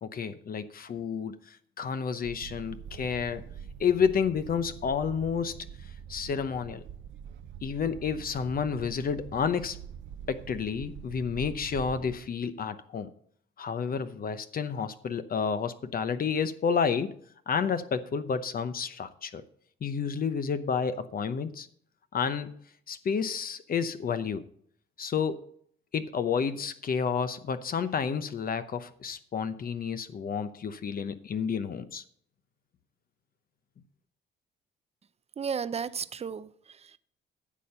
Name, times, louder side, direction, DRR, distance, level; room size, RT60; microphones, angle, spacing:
voice 1, 0.0-3.4 3.8-6.8 7.6-9.8 10.3-13.1 13.6-17.2 17.5-19.4 19.8-21.7 22.1-22.6 22.9-24.4 25.0-25.5 25.9-32.0, left 6 dB, 45° left, 0.8 m, -30 dB
sound 1, 2.2-12.2, right 8 dB, 70° right, 0.7 m, -44 dB
voice 2, 35.4-37.0, right 6 dB, 30° right, 0.6 m, -34 dB
10.0 x 6.7 x 5.5 m
cardioid pair, 90°, 20 cm